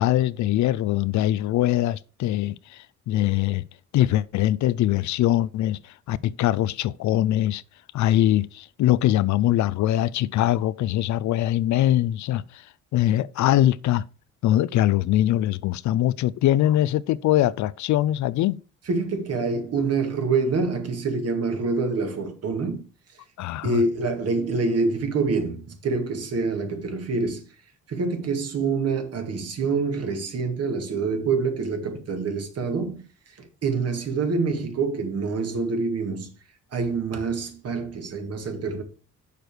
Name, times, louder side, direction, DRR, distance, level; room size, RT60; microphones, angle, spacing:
voice 1, 0.0-3.6 3.9-5.8 6.1-7.6 7.9-12.6 12.9-14.0 14.4-18.6 23.4-23.8, left 13 dB, 70° left, 0.5 m, -22 dB
voice 2, 18.9-22.9 23.1-23.2 23.6-27.6 27.9-36.3 36.7-38.8, right 4 dB, 55° right, 2.0 m, -26 dB
6.6 x 5.1 x 6.1 m
cardioid pair, 90°, 30 cm